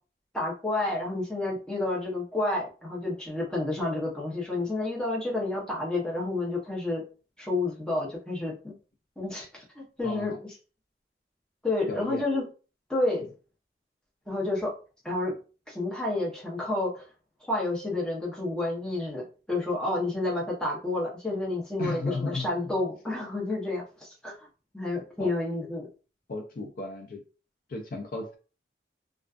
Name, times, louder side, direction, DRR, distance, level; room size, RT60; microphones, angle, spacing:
voice 1, 0.3-7.0 7.4-8.7 9.2-10.3 11.6-12.4 12.9-13.2 14.3-14.7 15.0-15.3 15.7-17.0 17.4-24.5 24.7-25.9, left 2 dB, 5° left, -4 dB, 0.8 m, -30 dB
voice 2, 10.0-10.4 11.9-12.3 21.8-22.5 25.2-25.3 26.3-27.2 27.7-28.4, left 2 dB, 50° left, 3 dB, 0.3 m, -34 dB
2.3 x 2.3 x 2.4 m, 0.35 s
head